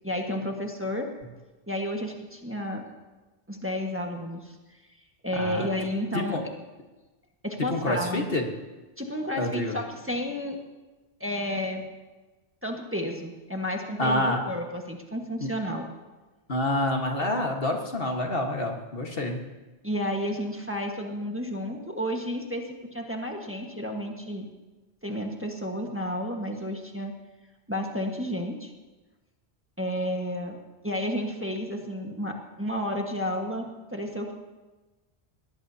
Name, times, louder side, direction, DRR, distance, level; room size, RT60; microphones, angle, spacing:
voice 1, 0.0-1.1 1.7-2.8 3.5-4.6 5.2-6.4 7.4-8.3 9.0-10.6 11.2-11.9 12.6-15.8 19.8-24.5 25.0-27.1 27.7-28.7 29.8-30.6 30.8-34.3, equal, 10° right, 1 dB, 1.5 m, -31 dB
voice 2, 5.3-5.7 6.1-6.4 7.6-8.5 9.4-9.8 14.0-14.4 15.4-15.6 16.5-19.4, left 1 dB, 60° left, 2 dB, 1.7 m, -27 dB
21.5 x 18.0 x 2.8 m, 1.2 s
omnidirectional pair, 1.1 m